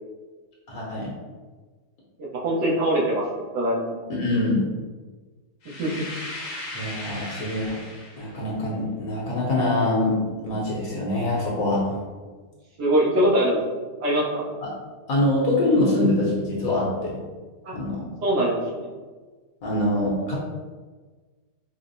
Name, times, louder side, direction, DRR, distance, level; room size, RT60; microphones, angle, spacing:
voice 1, 0.7-1.1 4.1-4.6 6.7-7.8 8.2-11.9 14.6-14.7 15.1-17.2 17.7-18.0 19.6-20.4, left 1 dB, 65° left, -5 dB, 1.3 m, -24 dB
voice 2, 2.2-3.2 3.5-4.0 5.8-6.1 12.8-13.6 14.0-14.4 17.6-17.7 18.2-18.9, right 1 dB, 80° right, -5 dB, 1.5 m, -22 dB
sound 1, 5.6-8.4, left 2 dB, 85° left, 1.4 m, -37 dB
4.8 x 2.0 x 2.6 m, 1.4 s
omnidirectional pair, 1.7 m